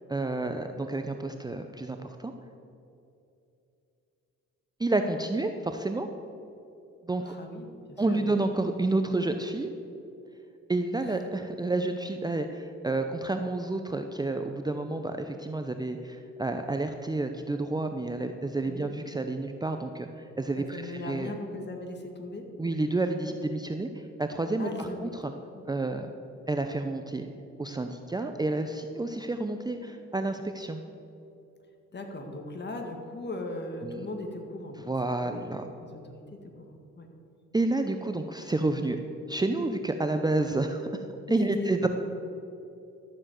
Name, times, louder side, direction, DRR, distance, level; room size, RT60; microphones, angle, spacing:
voice 1, 0.1-2.3 4.8-6.1 7.0-7.3 8.0-9.7 10.7-21.3 22.6-25.3 25.7-26.1 26.5-27.3 27.6-30.8 33.8-34.0 34.8-35.7 37.5-39.0 39.3-41.0 41.3-41.9, right 2 dB, 15° right, 6 dB, 0.7 m, -30 dB
voice 2, 7.2-8.4 10.9-11.2 18.6-18.9 20.6-22.4 24.6-25.1 25.5-25.6 31.9-34.9 35.2-35.5 35.8-37.1 41.3-41.9, left 2 dB, 35° left, 3 dB, 2.0 m, -38 dB
12.5 x 7.6 x 7.6 m, 2.8 s
cardioid pair, 90°, 30 cm